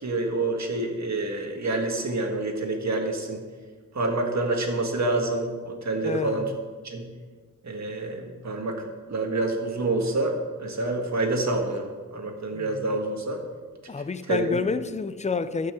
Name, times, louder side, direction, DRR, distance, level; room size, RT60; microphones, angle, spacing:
voice 1, 0.0-3.4 3.9-6.5 6.8-7.1 7.6-11.8 12.1-13.4 14.3-14.4, right 2 dB, 55° right, 1.7 m, -27 dB
voice 2, 6.0-6.6 12.5-13.0 13.9-15.7, left 4 dB, 20° left, 0.5 m, -29 dB
12.0 x 5.7 x 6.8 m
wide cardioid pair, 110°, 32 cm